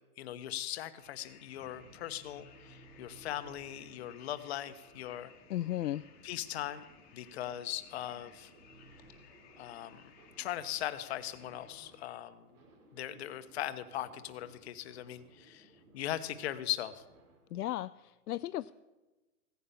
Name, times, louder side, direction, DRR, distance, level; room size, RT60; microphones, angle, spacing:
voice 1, 0.2-5.3 6.2-6.8 7.1-8.5 9.6-10.0 10.4-12.5 12.9-15.7 15.9-17.0, left 12 dB, 45° left, 12 dB, 1.0 m, -39 dB
sound 1, 1.0-11.7, left 8 dB, 20° left, 1.5 m, -60 dB
sound 2, 1.5-17.6, right 1 dB, 70° right, 5.8 m, -60 dB
voice 2, 5.5-6.0 17.5-18.7, left 13 dB, 75° left, 12 dB, 0.6 m, -35 dB
16.0 x 9.8 x 7.1 m, 1.1 s
hypercardioid pair, 150°, 46 cm